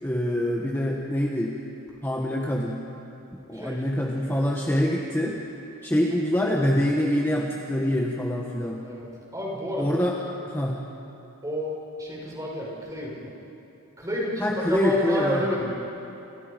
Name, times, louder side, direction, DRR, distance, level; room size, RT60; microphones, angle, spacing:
voice 1, 0.0-1.6 2.0-2.8 3.3-5.4 5.8-8.8 9.8-10.2 10.5-10.9 14.4-15.4, left 1 dB, 10° left, -1 dB, 1.5 m, -25 dB
voice 2, 3.5-3.8 4.2-4.5 8.8-10.0 11.4-13.3 14.0-15.7, equal, 15° right, -3 dB, 6.0 m, -30 dB
29.5 x 28.5 x 5.3 m, 2.9 s
head